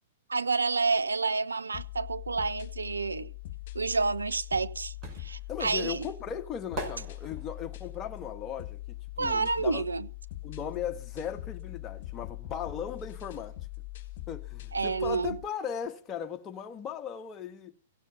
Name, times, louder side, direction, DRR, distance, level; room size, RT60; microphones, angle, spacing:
voice 1, 0.3-3.3 3.7-6.1 9.2-10.1 14.7-15.4, right 4 dB, 80° right, 0.7 m, -29 dB
sound 1, 1.7-15.5, left 17 dB, 55° left, 1.5 m, -42 dB
sound 2, 5.0-10.0 10.3-11.9 12.1-12.2, right 1 dB, 30° right, 5.2 m, -43 dB
voice 2, 5.5-9.8 10.4-13.5 14.3-17.7, left 8 dB, 25° left, 1.5 m, -37 dB
16.5 x 7.3 x 7.0 m
figure-of-eight pair, 110°, 0 cm